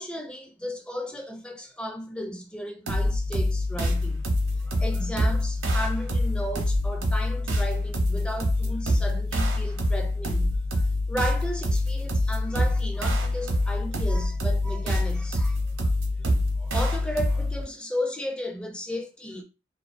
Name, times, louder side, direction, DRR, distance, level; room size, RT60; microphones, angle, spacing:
voice 1, 0.0-15.9 16.2-16.3 16.6-19.4, equal, 5° left, 0.4 m, -35 dB
sound 1, 2.9-17.6, left 1 dB, 80° right, 0.7 m, -25 dB
2.4 x 2.3 x 2.5 m
head